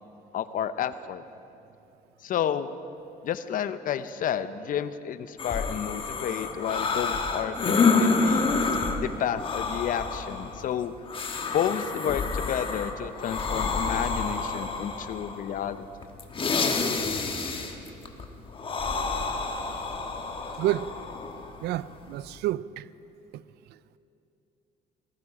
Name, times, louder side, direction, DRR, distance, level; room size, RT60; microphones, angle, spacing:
voice 1, 0.3-1.2 2.2-2.7 3.2-8.5 9.0-10.9 11.5-15.8, left 9 dB, 55° left, 0.7 m, -31 dB
sound 1, 5.4-22.4, left 4 dB, 30° left, 1.4 m, -29 dB
voice 2, 20.6-20.9 21.6-22.8, right 14 dB, 75° right, 0.4 m, -29 dB
19.0 x 15.0 x 4.9 m
cardioid pair, 110°, 17 cm